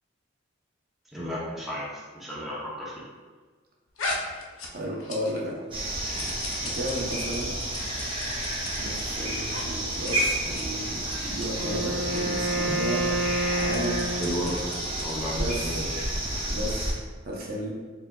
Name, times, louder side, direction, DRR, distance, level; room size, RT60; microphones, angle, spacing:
voice 1, 1.1-2.9 14.2-14.5 15.0-15.8, equal, ahead, -7 dB, 0.7 m, -33 dB
sound 1, 4.0-5.5 5.7-9.0 9.5-9.7 9.9-10.1 10.4-10.7 11.1-11.5 12.1-12.2 12.5-12.6 13.4-15.2, left 2 dB, 90° left, 0.6 m, -38 dB
voice 2, 4.7-5.6 6.6-7.6 8.8-13.1 13.6-14.2 15.3-15.8 16.5-17.0 17.2-17.7, equal, 50° right, -2 dB, 0.7 m, -33 dB
sound 2, 5.7-16.9, right 1 dB, 25° right, 1.2 m, -31 dB
Wind instrument woodwind instrument, 11.5-14.8, right 1 dB, 85° right, 0.7 m, -29 dB
4.5 x 3.9 x 2.3 m, 1.4 s
head